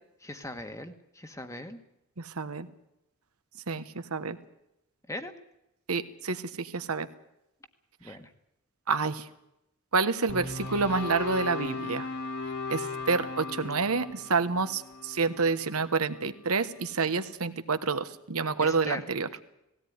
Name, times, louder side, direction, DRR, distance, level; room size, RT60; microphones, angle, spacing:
voice 1, 0.2-1.8 5.1-5.3 8.0-8.3 18.6-19.0, left 1 dB, 15° left, 8 dB, 1.4 m, -39 dB
voice 2, 2.2-2.7 3.7-3.8 4.1-4.4 5.9-7.1 8.9-9.3 9.9-12.1 12.7-19.3, right 4 dB, 85° right, 11 dB, 1.2 m, -28 dB
sound 1, 10.3-16.5, left 3 dB, 50° left, 2.5 m, -37 dB
18.5 x 17.0 x 9.5 m, 0.85 s
head